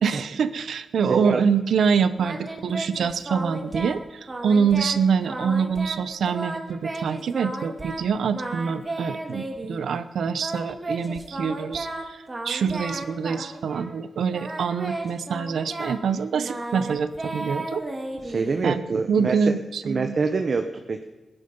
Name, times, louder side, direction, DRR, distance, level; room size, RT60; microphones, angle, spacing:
voice 1, 0.0-17.8 18.6-20.2, right 6 dB, 90° right, 14 dB, 0.8 m, -25 dB
voice 2, 1.1-1.4 18.2-19.4 19.8-21.0, right 4 dB, 40° right, 6 dB, 0.9 m, -25 dB
Singing, 2.2-4.0 4.3-5.0 5.3-8.0 8.3-9.8 10.4-14.0 14.3-18.7, right 2 dB, 25° right, 1.7 m, -34 dB
20.0 x 11.0 x 5.4 m, 1.2 s
wide cardioid pair, 180°, 0 cm